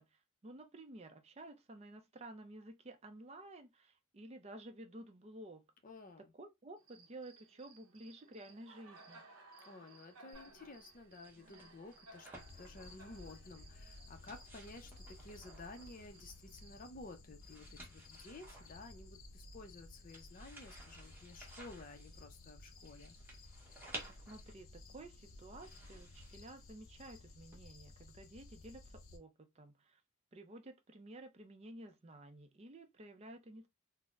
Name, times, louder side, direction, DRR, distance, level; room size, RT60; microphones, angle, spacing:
voice 1, 0.0-5.7 6.2-9.2 24.1-30.0 30.3-33.7, right 1 dB, 30° right, 0.5 m, -53 dB
voice 2, 5.8-6.3 9.7-23.1, left 2 dB, 40° left, 0.5 m, -53 dB
Cricket, 6.8-16.8, right 3 dB, 85° right, 0.7 m, -61 dB
sound 1, 10.3-27.6, right 1 dB, 10° right, 0.9 m, -57 dB
sound 2, 12.4-29.2, left 2 dB, 80° left, 0.6 m, -56 dB
4.0 x 2.0 x 2.4 m
head